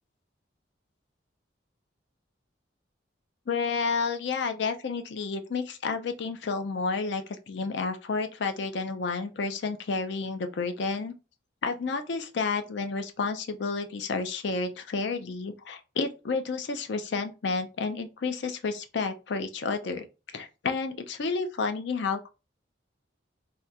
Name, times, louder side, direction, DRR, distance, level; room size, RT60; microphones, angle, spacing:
voice 1, 3.5-11.1 11.6-20.0 20.3-22.3, left 4 dB, 65° left, 0.5 m, -30 dB
3.5 x 2.2 x 2.7 m
head